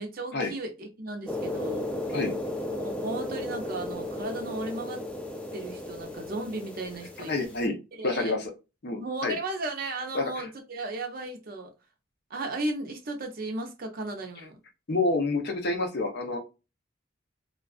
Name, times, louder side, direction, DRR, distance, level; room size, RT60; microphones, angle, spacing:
voice 1, 0.0-1.9 2.7-5.0 5.5-7.3 7.6-8.4 9.0-11.7 12.3-14.6, right 2 dB, 50° right, 3 dB, 0.6 m, -35 dB
sound 1, 1.3-7.6, left 1 dB, 5° left, 0.3 m, -35 dB
voice 2, 7.3-7.8 8.0-8.5 8.8-9.4 10.1-10.5 14.9-16.4, left 2 dB, 55° left, 3 dB, 0.7 m, -28 dB
2.4 x 2.3 x 2.3 m, 0.28 s
head